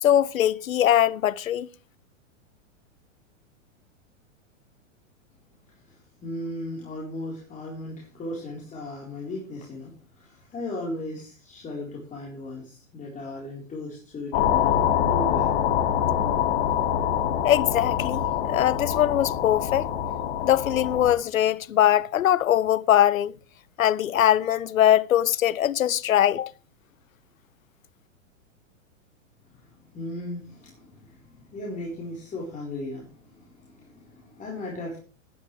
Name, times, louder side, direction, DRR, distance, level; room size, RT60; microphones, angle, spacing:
voice 1, 0.0-1.7 17.4-19.9 20.4-23.3 23.8-26.5, left 11 dB, 85° left, 0.7 m, -21 dB
voice 2, 5.7-15.6 29.5-35.0, left 1 dB, 20° left, 4.1 m, -37 dB
sound 1, 14.3-21.1, left 9 dB, 45° left, 2.3 m, -25 dB
18.0 x 11.0 x 3.3 m
hypercardioid pair, 125°, 40 cm